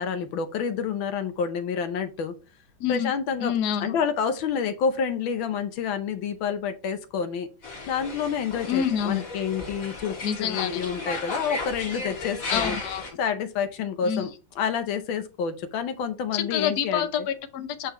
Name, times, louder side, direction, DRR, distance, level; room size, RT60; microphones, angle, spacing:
voice 1, 0.0-2.3 2.9-3.5 3.8-7.5 7.9-12.8 13.2-14.3 14.6-17.1, left 6 dB, 85° left, 1.6 m, -28 dB
voice 2, 2.8-3.1 3.4-4.0 8.6-9.2 10.2-10.8 12.5-13.2 14.0-14.3 16.3-17.9, left 9 dB, 60° left, 1.2 m, -27 dB
sound 1, 7.6-13.1, left 3 dB, 45° left, 2.1 m, -35 dB
8.3 x 3.7 x 4.2 m
omnidirectional pair, 2.1 m